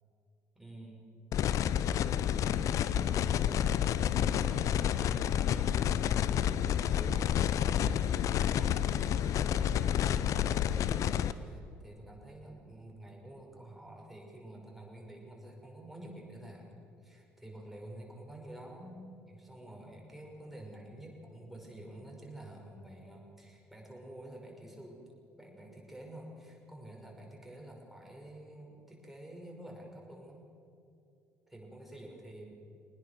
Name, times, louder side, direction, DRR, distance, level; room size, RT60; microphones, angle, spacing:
voice 1, 0.6-1.1 1.9-6.2 6.8-16.7 17.0-25.0 25.4-30.5 31.5-32.5, right 1 dB, 5° right, -1 dB, 5.9 m, -49 dB
sound 1, 1.3-11.3, left 10 dB, 50° left, 0.7 m, -29 dB
23.0 x 19.5 x 6.5 m, 2.6 s
figure-of-eight pair, 50°, 7 cm